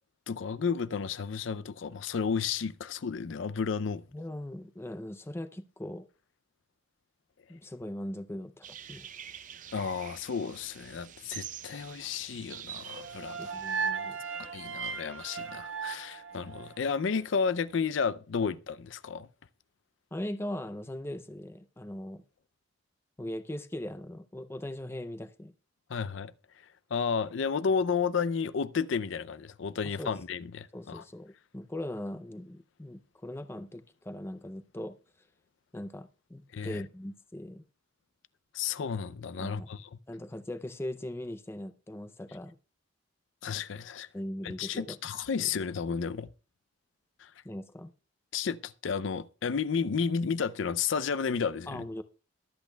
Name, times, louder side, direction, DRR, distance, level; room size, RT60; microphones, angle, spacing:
voice 1, 0.3-4.0 9.7-13.5 14.5-19.3 25.9-26.3 26.9-31.0 36.5-36.8 38.5-39.9 43.4-44.1 44.4-46.3 47.2-47.3 48.3-51.8, left 6 dB, 70° left, 0.5 m, -32 dB
voice 2, 4.1-6.1 7.5-9.1 13.4-14.2 20.1-22.2 23.2-25.5 30.0-30.1 30.7-35.0 35.7-37.6 39.4-39.7 40.1-42.6 44.1-45.0 45.4-45.5 47.4-47.9 51.7-52.0, left 1 dB, 10° left, 0.5 m, -40 dB
sound 1, 8.6-13.9, right 9 dB, 40° right, 0.5 m, -46 dB
sound 2, 12.9-17.1, right 5 dB, 80° right, 1.1 m, -36 dB
22.0 x 8.3 x 2.2 m
head